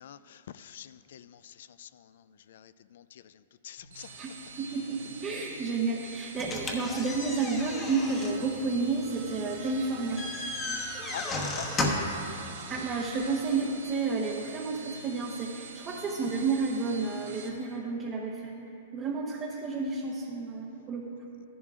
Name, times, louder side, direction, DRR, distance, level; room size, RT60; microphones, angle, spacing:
voice 1, 0.0-4.1 11.1-12.1, left 10 dB, 70° left, 15 dB, 0.3 m, -46 dB
sound 1, 3.8-17.5, right 4 dB, 60° right, 1.3 m, -45 dB
voice 2, 4.6-10.2 12.7-18.5 18.9-21.0, right 4 dB, 25° right, -2 dB, 0.9 m, -31 dB
sound 2, 6.4-12.2, left 2 dB, 20° left, 1.1 m, -34 dB
13.5 x 11.0 x 2.4 m, 2.9 s
hypercardioid pair, 145°, 0 cm